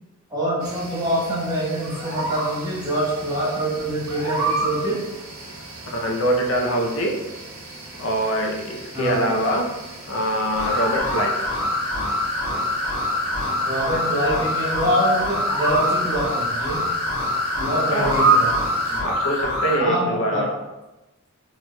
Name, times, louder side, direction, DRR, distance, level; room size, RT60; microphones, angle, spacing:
voice 1, 0.3-5.0 8.9-9.2 13.6-16.8 17.6-18.5 19.8-20.5, equal, 15° right, -7 dB, 1.2 m, -25 dB
sound 1, 0.6-19.0, right 3 dB, 60° right, 0.8 m, -30 dB
voice 2, 5.9-7.2 8.0-9.7 10.1-11.5 17.9-18.2 19.0-20.5, equal, 70° left, 0 dB, 0.6 m, -24 dB
sound 2, 10.5-19.8, left 1 dB, 5° left, 1.5 m, -25 dB
4.6 x 3.0 x 2.2 m, 1.0 s
head